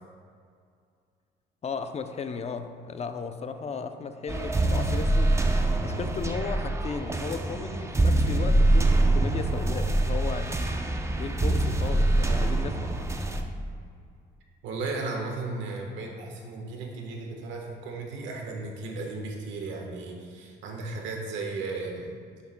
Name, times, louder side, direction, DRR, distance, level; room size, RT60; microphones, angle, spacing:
voice 1, 1.6-5.4 5.8-10.6 11.2-12.7, left 5 dB, 35° left, 8 dB, 0.6 m, -35 dB
sound 1, 4.3-13.4, right 2 dB, 15° right, 0.6 m, -24 dB
voice 2, 14.6-22.1, right 3 dB, 90° right, 1 dB, 1.3 m, -35 dB
11.0 x 7.2 x 2.2 m, 2.2 s
cardioid pair, 95°, 19 cm